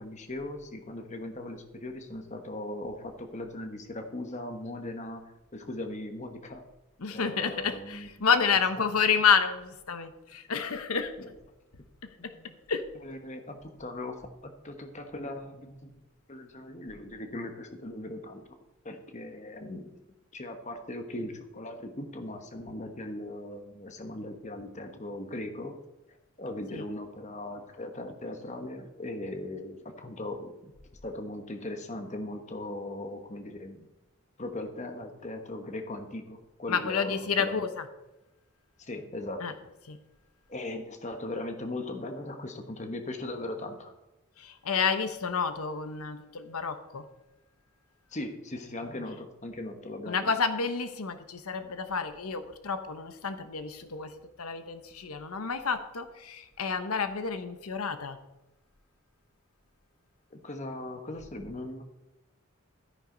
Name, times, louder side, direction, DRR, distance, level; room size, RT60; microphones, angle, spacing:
voice 1, 0.0-5.2 5.5-6.6 7.1-8.1 11.2-11.3 12.2-12.5 13.0-16.0 16.3-18.4 18.8-20.0 20.3-25.8 26.4-30.7 31.0-33.8 34.4-37.7 38.8-39.6 40.5-43.9 48.1-50.3 60.3-61.8, left 1 dB, 30° left, 6 dB, 1.2 m, -39 dB
voice 2, 7.0-11.1 12.7-12.8 26.7-26.8 36.7-37.8 39.4-39.5 39.9-40.0 44.4-47.0 50.1-58.2, left 6 dB, 85° left, 9 dB, 1.0 m, -29 dB
13.5 x 9.7 x 3.9 m, 0.98 s
head